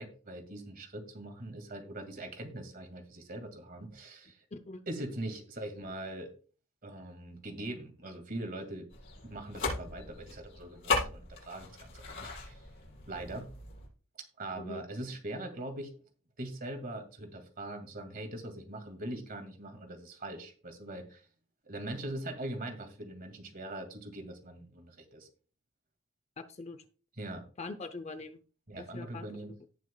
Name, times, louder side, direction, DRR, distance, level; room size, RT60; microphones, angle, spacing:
voice 1, 0.0-4.4 4.9-6.3 6.8-8.9 9.2-12.6 13.1-13.5 14.4-15.9 16.4-21.2 21.7-25.3 27.2-27.4 28.7-29.5, right 1 dB, 40° right, 6 dB, 2.2 m, -42 dB
voice 2, 4.5-4.8 14.6-14.8 26.4-26.8 27.6-28.4 28.9-29.3, left 3 dB, 30° left, 9 dB, 0.5 m, -42 dB
sound 1, 8.9-13.9, left 3 dB, 55° left, 5.4 m, -37 dB
18.5 x 6.2 x 2.3 m, 0.38 s
head